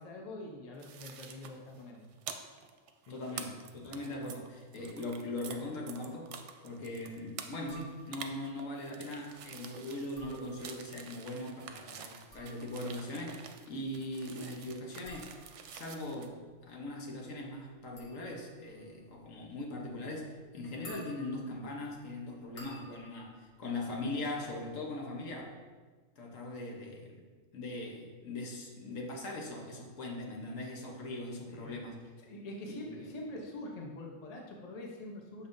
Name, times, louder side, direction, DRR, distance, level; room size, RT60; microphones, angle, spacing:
voice 1, 0.0-2.0 3.1-3.4 31.5-31.8 32.3-35.5, left 1 dB, 35° left, 0 dB, 0.8 m, -44 dB
sound 1, 0.8-5.5 5.9-16.3, right 8 dB, 70° right, 0.8 m, -48 dB
voice 2, 3.1-6.4 6.6-15.4 15.7-25.6 26.2-27.1 27.5-32.0 32.6-33.1, left 2 dB, 85° left, 0 dB, 1.4 m, -40 dB
sound 2, 7.7-8.4 10.0-11.0 12.0-24.7 25.0-25.6, equal, 50° left, 1.1 m, -57 dB
6.6 x 5.5 x 2.6 m, 1.4 s
omnidirectional pair, 1.3 m